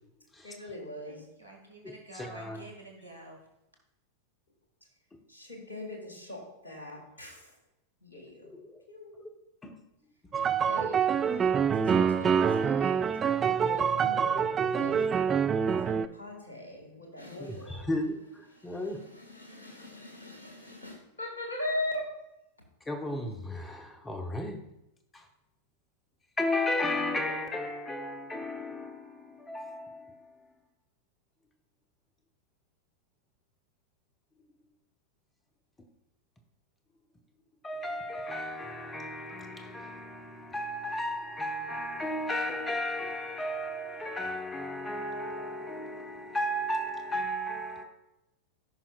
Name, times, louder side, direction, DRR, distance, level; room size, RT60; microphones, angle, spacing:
voice 1, 0.4-1.2 5.3-7.5 8.0-8.5 8.9-9.3 10.6-15.0 15.6-17.9 18.5-22.1, left 1 dB, 75° left, 2.0 m, -40 dB
voice 2, 1.0-3.4, right 1 dB, 85° right, 1.4 m, -49 dB
voice 3, 1.8-2.6 8.5-8.8 9.6-9.8 12.3-12.7 13.0-15.7 17.7-18.2 18.6-19.0 22.9-24.6 25.1-25.2 26.4-30.2 37.6-47.8, left 1 dB, 15° left, 0.9 m, -35 dB
sound 1, 10.3-16.1, right 7 dB, 25° right, 0.3 m, -26 dB
14.5 x 5.7 x 2.4 m
figure-of-eight pair, 90°, 0 cm